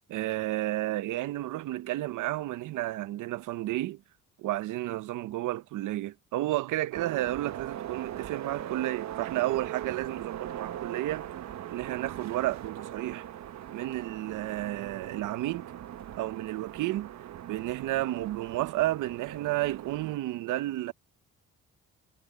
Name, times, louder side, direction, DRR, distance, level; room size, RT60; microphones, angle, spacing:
voice 1, 0.1-4.0 4.4-11.2 11.7-13.2 13.7-15.7 16.2-17.1 17.5-20.9, right 16 dB, 85° right, 0.8 m, -32 dB
sound 1, 6.9-20.2, right 11 dB, 65° right, 1.1 m, -40 dB
cardioid pair, 90°, 30 cm